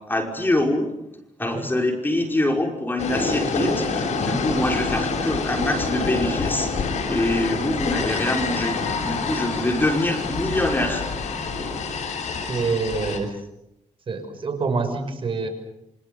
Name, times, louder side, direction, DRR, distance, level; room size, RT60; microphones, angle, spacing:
voice 1, 0.1-0.9 1.4-11.0, left 1 dB, 15° left, 2 dB, 5.3 m, -24 dB
sound 1, 3.0-13.2, left 4 dB, 90° left, 7.0 m, -26 dB
voice 2, 12.5-13.4 14.1-15.5, right 4 dB, 50° right, 6 dB, 6.1 m, -26 dB
28.5 x 25.5 x 7.0 m, 0.86 s
cardioid pair, 110°, 12 cm